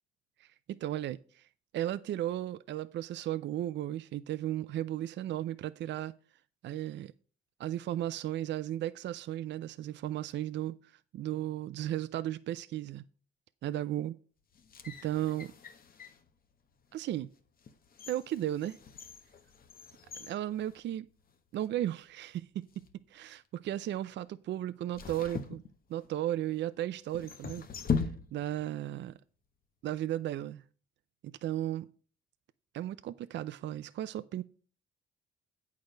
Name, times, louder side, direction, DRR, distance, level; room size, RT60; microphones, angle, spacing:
voice 1, 0.4-1.5 1.7-6.1 6.6-7.1 7.6-10.8 11.1-13.0 13.6-14.2 14.9-15.5 16.9-17.3 18.1-18.8 20.2-21.1 21.5-22.5 23.1-25.6 25.9-27.7 27.9-28.0 28.3-29.1 29.8-30.6 31.4-31.9 32.7-34.4, right 13 dB, 65° right, 0.5 m, -35 dB
sound 1, 14.5-16.3 16.9-17.0 17.6-21.3 21.6-21.7 22.6-22.9 24.9-26.3 27.1-28.7 28.9-29.0, left 6 dB, 50° left, 1.1 m, -39 dB
8.7 x 4.7 x 6.4 m
cardioid pair, 90°, 20 cm